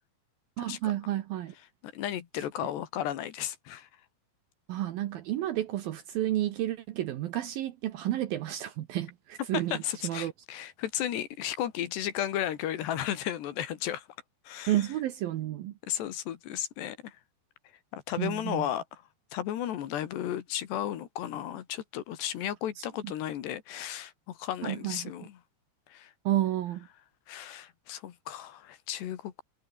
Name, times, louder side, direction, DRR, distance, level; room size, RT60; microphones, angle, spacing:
voice 1, 0.6-1.5 4.7-10.3 14.7-15.7 18.2-18.7 23.0-23.1 24.6-25.1 26.3-26.9, right 13 dB, 70° right, 2.4 m, -31 dB
voice 2, 1.8-3.9 9.5-14.0 14.5-14.7 15.9-17.1 17.9-19.0 19.3-25.4 25.9-26.1 27.3-29.4, left 11 dB, 70° left, 3.9 m, -34 dB
omnidirectional pair, 5.2 m